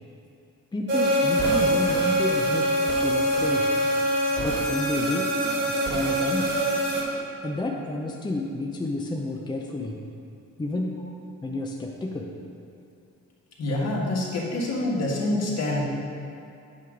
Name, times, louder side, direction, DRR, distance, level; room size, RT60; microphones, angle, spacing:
voice 1, 0.7-2.7 3.0-3.7 4.4-5.3 5.6-6.5 7.4-10.0 10.6-10.9 11.4-12.3, left 2 dB, 15° left, 0 dB, 0.6 m, -30 dB
sound 1, 0.9-7.0, right 1 dB, 35° right, 1.7 m, -24 dB
voice 2, 13.6-16.0, left 1 dB, 55° left, -3 dB, 1.7 m, -26 dB
8.4 x 3.6 x 6.1 m, 2.7 s
cardioid pair, 90°, 30 cm